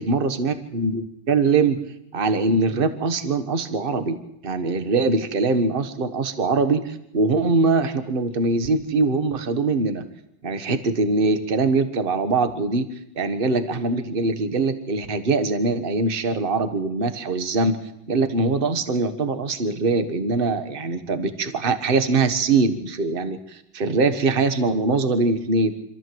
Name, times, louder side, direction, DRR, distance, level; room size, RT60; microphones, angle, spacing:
voice 1, 0.0-1.8 2.1-10.0 10.4-12.9 13.2-17.8 18.1-25.7, right 3 dB, 30° right, 10 dB, 1.4 m, -22 dB
26.5 x 14.0 x 7.8 m, 0.78 s
omnidirectional pair, 2.2 m